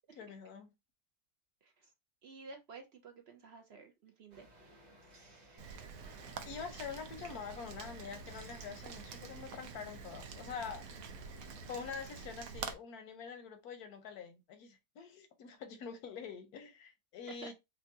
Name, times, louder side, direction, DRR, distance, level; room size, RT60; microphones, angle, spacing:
voice 1, 0.2-0.7 6.4-10.9 11.7-17.5, left 6 dB, 90° left, 1.3 m, -45 dB
voice 2, 1.6-1.9 2.2-4.5 17.3-17.5, right 4 dB, 60° right, 0.7 m, -52 dB
sound 1, 4.3-12.2, right 1 dB, 35° right, 1.0 m, -59 dB
Rain, 5.6-12.7, right 6 dB, 75° right, 1.1 m, -47 dB
4.4 x 2.3 x 2.6 m
omnidirectional pair, 1.6 m